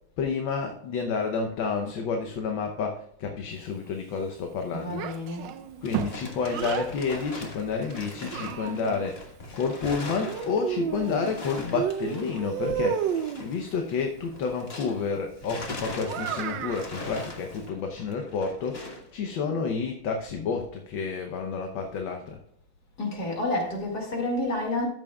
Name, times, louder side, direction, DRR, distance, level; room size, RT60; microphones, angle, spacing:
voice 1, 0.2-5.0 5.8-22.4, left 5 dB, 70° left, 1.5 m, -30 dB
voice 2, 4.7-5.5 23.0-24.9, left 2 dB, 50° left, 2.6 m, -29 dB
Child speech kid speaking, 4.9-6.9 7.8-9.1 10.2-11.4 11.7-13.5 16.0-16.9, right 9 dB, 70° right, 1.2 m, -32 dB
sound 1, 5.4-15.1 15.4-19.1, left 2 dB, 30° left, 1.5 m, -41 dB
13.5 x 7.2 x 2.3 m
omnidirectional pair, 2.2 m